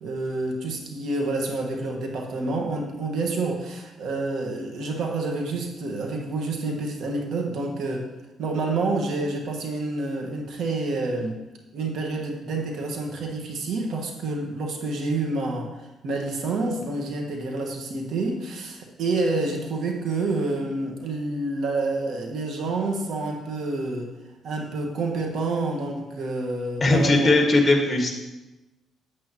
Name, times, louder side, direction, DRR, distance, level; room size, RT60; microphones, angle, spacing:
voice 1, 0.0-8.1 8.4-11.4 11.7-24.1 24.4-27.3, right 3 dB, 75° right, 1 dB, 1.5 m, -28 dB
voice 2, 26.8-28.1, left 2 dB, 25° left, 2 dB, 1.6 m, -19 dB
8.4 x 8.3 x 3.0 m, 1.0 s
cardioid pair, 90°, 0 cm